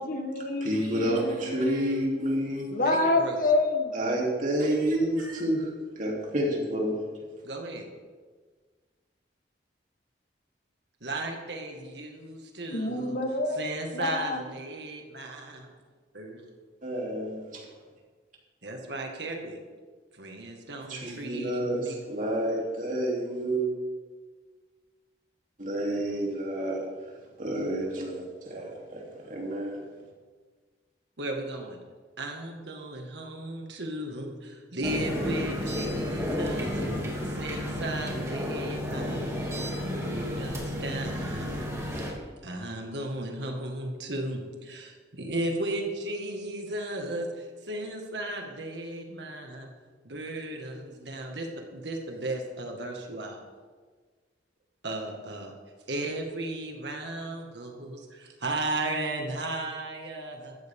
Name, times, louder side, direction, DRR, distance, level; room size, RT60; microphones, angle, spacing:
voice 1, 0.0-1.9 2.7-3.9 12.7-13.6 13.9-14.4, left 2 dB, 50° left, 5 dB, 1.5 m, -27 dB
voice 2, 0.6-2.7 3.9-7.0 16.8-17.6 20.9-23.7 25.6-26.8 27.4-29.8, right 1 dB, 45° right, -2 dB, 3.3 m, -29 dB
voice 3, 2.8-3.4 7.4-7.9 11.0-13.2 13.5-15.7 16.1-16.4 18.6-19.6 20.1-21.9 31.2-31.8 32.2-39.4 39.9-41.8 42.1-42.2 42.4-49.7 50.0-53.4 54.8-55.5 55.9-60.7, right 2 dB, 70° right, 2 dB, 2.0 m, -35 dB
sound 1, 34.8-42.1, left 1 dB, 15° right, 2.6 m, -32 dB
16.0 x 13.0 x 3.7 m, 1.5 s
head